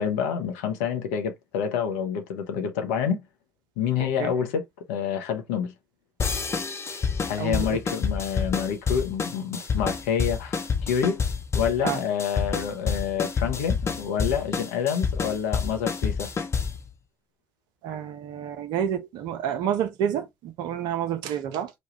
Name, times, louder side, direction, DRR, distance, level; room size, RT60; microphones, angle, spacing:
voice 1, 0.0-3.2 3.8-5.7 7.2-11.2 11.5-16.3, left 7 dB, 75° left, 0.7 m, -28 dB
voice 2, 4.0-4.3 7.4-7.8 11.8-12.0 17.8-21.7, right 9 dB, 65° right, 0.6 m, -29 dB
sound 1, 6.2-16.9, left 5 dB, 35° left, 0.8 m, -28 dB
3.1 x 2.2 x 3.0 m
hypercardioid pair, 50°, 8 cm